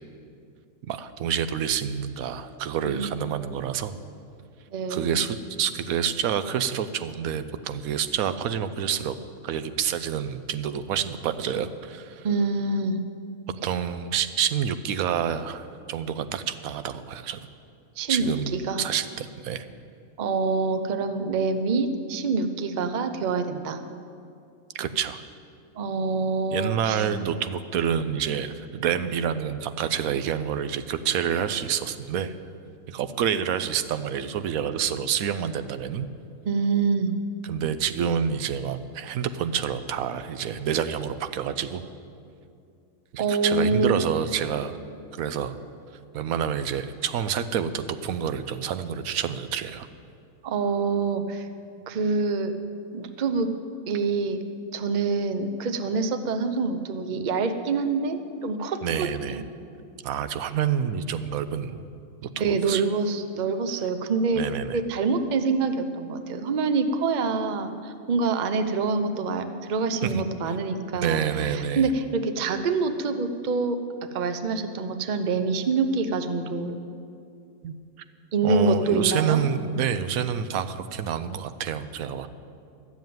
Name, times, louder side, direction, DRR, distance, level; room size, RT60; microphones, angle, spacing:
voice 1, 0.8-3.9 4.9-9.2 9.4-12.3 13.6-17.4 18.1-19.6 24.7-25.2 26.5-32.3 32.9-36.1 37.4-41.8 43.1-44.8 45.1-45.6 46.1-49.9 58.8-59.4 60.0-61.8 62.2-62.8 64.3-64.8 70.0-70.2 70.9-71.9 77.6-77.8 78.4-82.3, right 8 dB, 80° right, 11 dB, 1.1 m, -28 dB
voice 2, 4.7-5.2 12.2-13.0 18.0-18.8 20.2-23.8 25.8-27.1 36.4-37.2 43.2-44.0 50.4-51.5 51.9-52.5 52.9-53.5 53.9-54.4 54.7-59.4 62.4-64.5 64.7-76.8 78.3-79.4, right 4 dB, 45° right, 8 dB, 0.6 m, -26 dB
12.5 x 7.3 x 9.2 m, 2.5 s
omnidirectional pair, 1.5 m